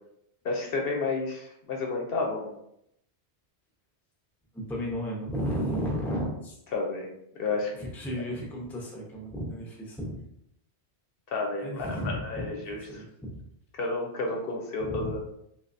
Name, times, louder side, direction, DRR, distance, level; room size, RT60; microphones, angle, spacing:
voice 1, 0.4-2.5 6.7-7.1 7.4-7.7 11.3-13.0 13.7-15.2, left 3 dB, 65° left, 0 dB, 0.8 m, -31 dB
voice 2, 4.5-6.6 7.7-10.1 11.6-13.4 14.8-15.1, equal, ahead, -3 dB, 0.6 m, -33 dB
3.3 x 3.0 x 2.6 m, 0.76 s
omnidirectional pair, 1.1 m